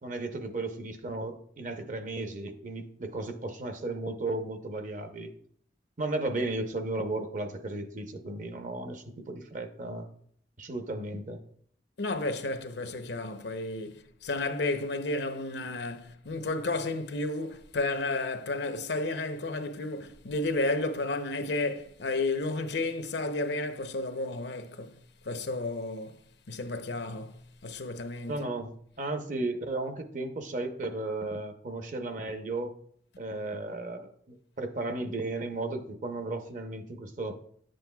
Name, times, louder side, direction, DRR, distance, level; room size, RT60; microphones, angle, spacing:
voice 1, 0.0-5.3 6.0-10.1 10.6-11.4 28.3-28.7 29.0-32.7 33.2-37.4, right 2 dB, 45° right, 0.7 m, -34 dB
voice 2, 12.0-25.0 25.2-26.2 26.5-28.5, left 2 dB, 75° left, 0.7 m, -32 dB
10.5 x 7.7 x 2.3 m
head